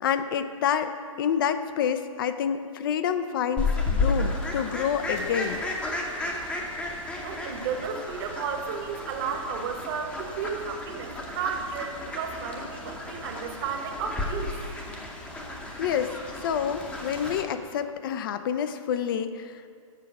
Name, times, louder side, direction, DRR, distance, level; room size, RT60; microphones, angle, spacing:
voice 1, 0.0-5.6 15.8-16.2 16.4-19.7, left 8 dB, 40° left, 10 dB, 0.4 m, -28 dB
Fowl, 3.6-17.4, left 2 dB, 5° left, 0.7 m, -33 dB
voice 2, 7.2-14.5, right 6 dB, 40° right, 4 dB, 1.0 m, -33 dB
7.4 x 4.7 x 5.8 m, 2.3 s
hypercardioid pair, 140°, 18 cm